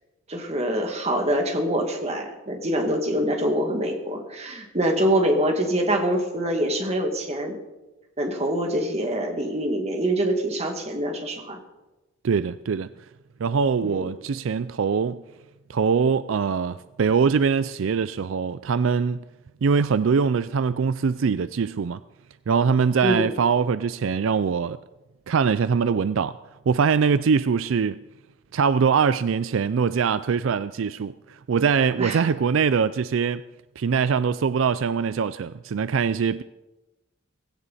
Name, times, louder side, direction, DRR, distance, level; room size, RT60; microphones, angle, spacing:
voice 1, 0.3-7.5 8.2-11.6 13.8-14.1 23.0-23.3 32.0-32.2, right 1 dB, 30° right, 2.3 m, -25 dB
voice 2, 12.2-12.9 13.4-15.2 15.7-19.2 19.6-22.0 22.5-24.8 25.3-26.4 26.7-28.0 28.5-33.4 33.8-36.4, right 6 dB, 70° right, 0.4 m, -22 dB
18.0 x 16.5 x 4.2 m
head